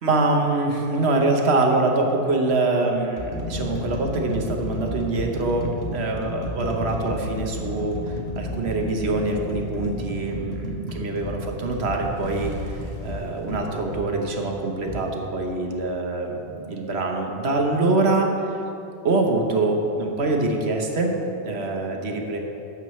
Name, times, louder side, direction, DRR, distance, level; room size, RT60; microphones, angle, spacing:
voice 1, 0.0-8.0 8.4-18.6 19.0-22.4, right 2 dB, 70° right, 2 dB, 1.2 m, -24 dB
sound 1, 0.9-1.1 2.0-2.2 2.8-14.1 14.9-15.1, left 1 dB, 40° left, 1.1 m, -32 dB
Bird, 11.6-14.8 15.3-15.4 15.7-16.0 16.8-16.9, right 1 dB, 25° left, 1.6 m, -40 dB
11.5 x 8.1 x 3.1 m, 2.8 s
omnidirectional pair, 1.2 m